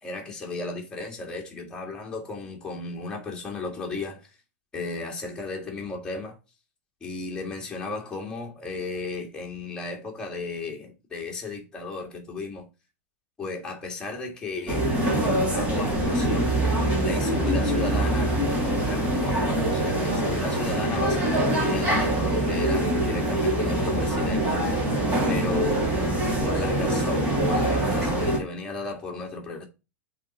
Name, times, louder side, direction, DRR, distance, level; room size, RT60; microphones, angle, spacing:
voice 1, 0.0-4.3 4.7-6.4 7.0-12.7 13.4-16.5 17.0-24.6 25.3-25.8 26.4-29.7, left 3 dB, 10° left, 2.4 m, -35 dB
sound 1, 14.7-28.4, right 1 dB, 20° right, 3.6 m, -24 dB
8.0 x 4.1 x 4.5 m
supercardioid pair, 145°, 8 cm